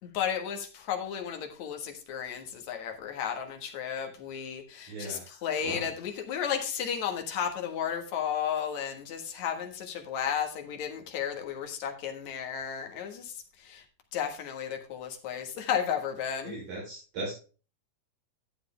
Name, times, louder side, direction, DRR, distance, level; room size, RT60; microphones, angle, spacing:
voice 1, 0.0-13.9 14.1-16.6, left 8 dB, 60° left, 3 dB, 2.6 m, -33 dB
voice 2, 4.9-5.4 5.6-5.9 16.4-17.3, right 2 dB, 60° right, -5 dB, 5.2 m, -38 dB
12.5 x 7.9 x 3.4 m, 0.35 s
omnidirectional pair, 4.2 m